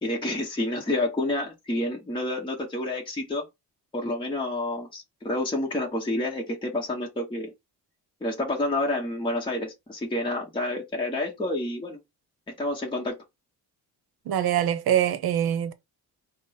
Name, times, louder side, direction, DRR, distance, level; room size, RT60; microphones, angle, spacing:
voice 1, 0.0-3.4 3.9-7.5 8.2-12.0 12.6-13.2, left 1 dB, 10° left, 1.0 m, -29 dB
voice 2, 14.3-15.7, right 10 dB, 65° right, 0.8 m, -24 dB
5.1 x 2.1 x 4.1 m
cardioid pair, 150°, 40 cm